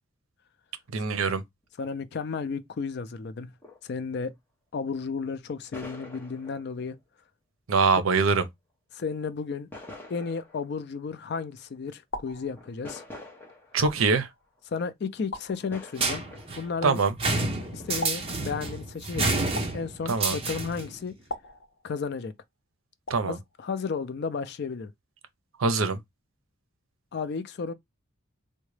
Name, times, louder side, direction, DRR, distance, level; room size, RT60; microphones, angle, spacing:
voice 1, 0.9-1.4 7.7-8.5 13.7-14.3 16.8-17.1 20.1-20.4 23.1-23.4 25.6-26.0, right 4 dB, 80° right, 0.6 m, -23 dB
sound 1, 1.6-1.7 2.0-2.1 3.6-3.8 5.7-6.9 7.9-8.3 9.7-10.8 11.9-12.0 12.4-14.0 14.6-14.7 15.7-16.8 17.6-18.4, left 2 dB, 10° left, 0.7 m, -45 dB
voice 2, 1.8-3.5 3.8-4.3 4.7-7.0 8.9-9.7 10.1-13.0 14.7-16.2 16.6-17.0 17.7-19.5 19.7-21.1 21.8-22.3 23.2-24.9 27.1-27.7, left 5 dB, 55° left, 0.4 m, -33 dB
sound 2, 11.0-11.5 12.1-13.1 13.8-14.7 15.3-16.2 16.8-17.5 18.0-18.9 19.5-20.4 21.3-22.3 23.1-23.7, left 1 dB, 70° left, 0.8 m, -41 dB
sound 3, 16.0-20.9, right 2 dB, 25° right, 0.7 m, -29 dB
3.7 x 2.1 x 3.2 m
head